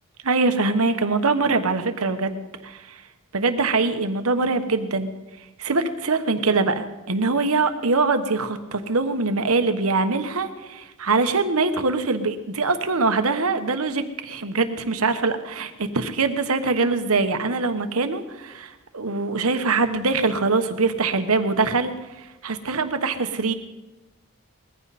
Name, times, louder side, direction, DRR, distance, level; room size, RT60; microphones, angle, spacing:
voice 1, 0.2-3.0 3.3-5.1 5.6-23.5, right 3 dB, 80° right, 9 dB, 1.2 m, -23 dB
20.0 x 15.0 x 4.2 m, 1.1 s
head